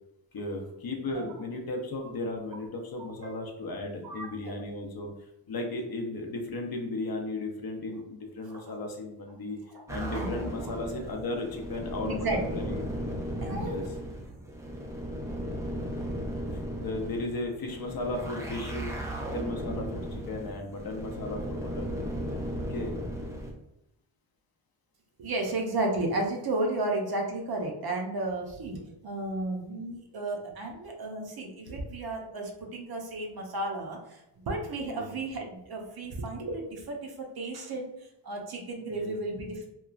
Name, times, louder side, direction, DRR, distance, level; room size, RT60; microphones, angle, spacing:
voice 1, 0.3-5.1 5.5-9.6 9.9-12.8 13.6-13.8 16.8-18.9 19.3-22.0 22.7-22.9 34.9-35.1 38.9-39.1, left 2 dB, 50° left, 2 dB, 0.5 m, -35 dB
voice 2, 3.0-3.4 4.0-4.7 8.5-8.7 9.7-9.8 10.1-10.3 10.6-10.7 12.0-12.6 13.4-13.9 25.2-37.9 38.2-39.7, right 2 dB, 50° right, 1 dB, 0.6 m, -33 dB
sound 1, 9.9-23.5, equal, 5° right, 0.3 m, -36 dB
3.0 x 2.3 x 2.3 m, 0.86 s
wide cardioid pair, 125°, 48 cm